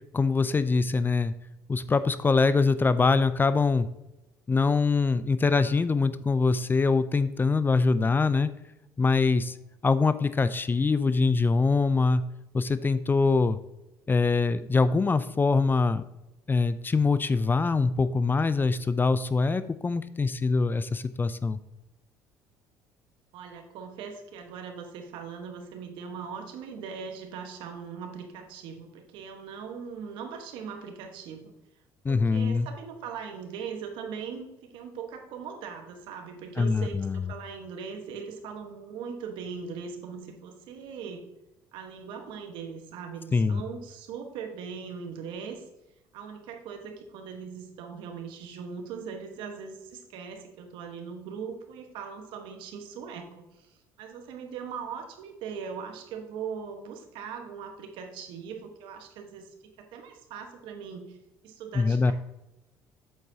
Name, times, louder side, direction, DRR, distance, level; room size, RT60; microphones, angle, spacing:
voice 1, 0.1-1.3 1.7-3.9 4.5-8.5 9.0-9.6 9.8-12.2 12.5-13.6 14.1-16.0 16.5-21.6 32.0-32.7 36.6-37.3 43.3-43.6 61.7-62.1, left 4 dB, 25° left, 14 dB, 0.5 m, -24 dB
voice 2, 23.3-31.5 32.1-41.2 41.7-45.6 46.1-59.5 59.8-61.2 61.4-62.1, right 6 dB, 70° right, 5 dB, 1.3 m, -40 dB
7.9 x 7.9 x 2.8 m, 0.94 s
supercardioid pair, 75°, 9 cm